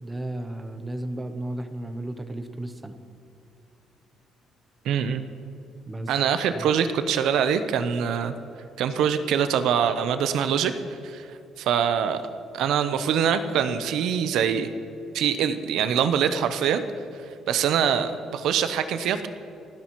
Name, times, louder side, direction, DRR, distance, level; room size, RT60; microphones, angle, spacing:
voice 1, 0.0-3.0 5.9-6.2 6.5-6.7, right 1 dB, 10° right, 9 dB, 0.7 m, -34 dB
voice 2, 4.8-5.2 6.1-8.3 8.8-10.7 11.0-11.2 11.6-12.2 12.5-14.7 15.1-16.8 17.5-19.3, right 8 dB, 70° right, 10 dB, 0.7 m, -24 dB
29.0 x 10.0 x 3.1 m, 2.7 s
cardioid pair, 165°, 0 cm